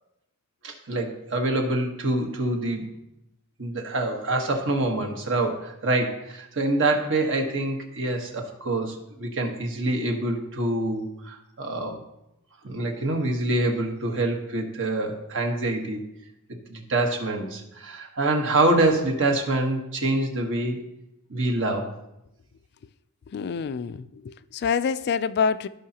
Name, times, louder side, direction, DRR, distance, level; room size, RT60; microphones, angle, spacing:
voice 1, 0.6-2.9 3.6-12.0 12.6-16.0 16.7-20.8 21.3-21.9, right 2 dB, 60° right, 1.3 m, -26 dB
voice 2, 23.3-25.7, left 6 dB, 50° left, 0.3 m, -26 dB
15.5 x 5.5 x 2.9 m
head